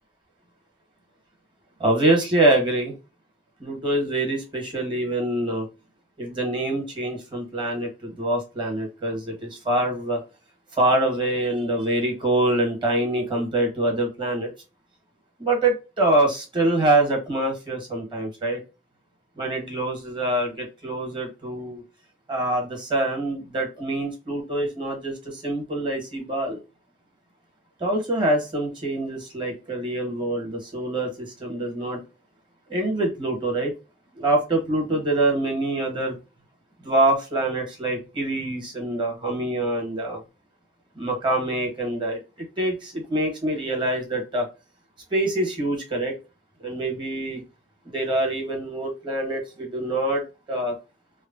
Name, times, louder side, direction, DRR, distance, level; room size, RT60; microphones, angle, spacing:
voice 1, 1.8-2.9 3.6-5.7 6.2-10.2 10.8-14.5 15.4-18.6 19.4-21.8 22.3-26.6 27.8-32.0 32.7-33.7 34.2-36.2 36.8-40.2 41.0-44.5 45.1-46.2 46.6-47.4 47.9-50.2 50.5-50.7, right 1 dB, 30° right, 1 dB, 1.2 m, -25 dB
3.1 x 2.1 x 2.4 m, 0.29 s
head